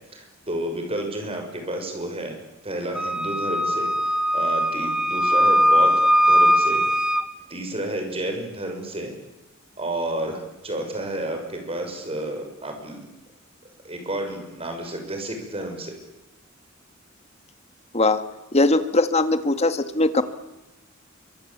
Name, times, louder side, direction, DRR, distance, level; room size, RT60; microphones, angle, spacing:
voice 1, 0.1-2.4 2.6-7.0 7.5-9.1 9.8-13.1 13.8-16.0, right 1 dB, 30° right, 5 dB, 6.5 m, -31 dB
Wind instrument woodwind instrument, 2.9-7.3, equal, 5° right, 1.3 m, -20 dB
voice 2, 18.5-20.2, left 2 dB, 30° left, 10 dB, 1.8 m, -20 dB
28.0 x 24.5 x 8.7 m, 0.99 s
head